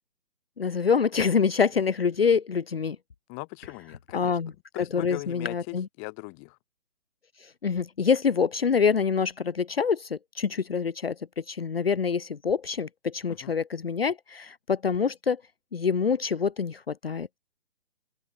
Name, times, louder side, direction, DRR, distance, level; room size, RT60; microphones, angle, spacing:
voice 1, 0.6-3.0 4.1-4.5 4.9-5.9 7.4-15.4 15.7-17.3, left 6 dB, 45° left, 1.7 m, -26 dB
voice 2, 3.3-4.4 4.7-6.6 13.3-13.5, left 40 dB or more, 10° left, 4.8 m, -39 dB
open air
hypercardioid pair, 180°, 41 cm